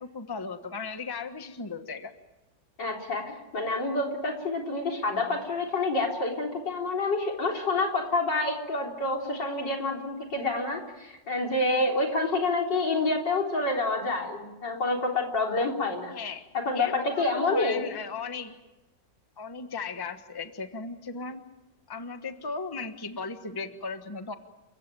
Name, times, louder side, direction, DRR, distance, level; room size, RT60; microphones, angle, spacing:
voice 1, 0.0-2.1 16.1-16.4 16.7-18.6 19.4-21.4 21.9-24.3, left 4 dB, 15° left, 8 dB, 1.1 m, -36 dB
voice 2, 2.8-16.1 16.5-17.9, left 2 dB, 80° left, 1 dB, 4.4 m, -28 dB
29.5 x 15.5 x 9.2 m, 1.0 s
omnidirectional pair, 1.9 m